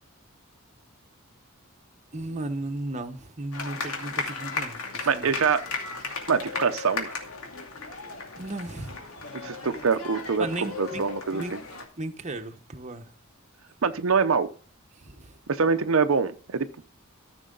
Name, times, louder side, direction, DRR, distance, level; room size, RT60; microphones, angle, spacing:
voice 1, 2.1-5.3 8.4-9.0 10.4-11.1 11.3-11.6 12.0-13.1 14.9-15.4, right 2 dB, 35° right, 1.0 m, -35 dB
sound 1, 3.5-11.9, left 4 dB, 80° left, 2.5 m, -36 dB
voice 2, 5.1-5.6 6.3-7.1 9.3-10.5 10.8-11.4 13.8-14.5 15.5-16.7, right 5 dB, 70° right, 0.7 m, -24 dB
14.0 x 6.2 x 3.8 m
head